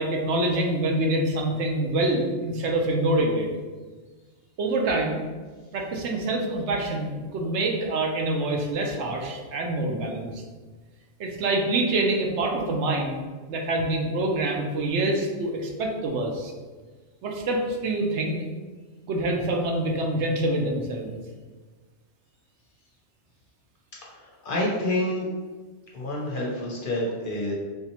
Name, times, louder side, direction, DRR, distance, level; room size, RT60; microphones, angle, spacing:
voice 1, 0.0-3.5 4.6-5.2 5.7-10.4 11.2-13.2 13.5-16.5 17.2-18.4 19.1-21.2, right 2 dB, 75° right, 1 dB, 0.9 m, -26 dB
voice 2, 24.0-25.3 25.9-27.5, left 1 dB, 55° left, -3 dB, 0.6 m, -28 dB
3.4 x 2.7 x 2.9 m, 1.4 s
omnidirectional pair, 1.2 m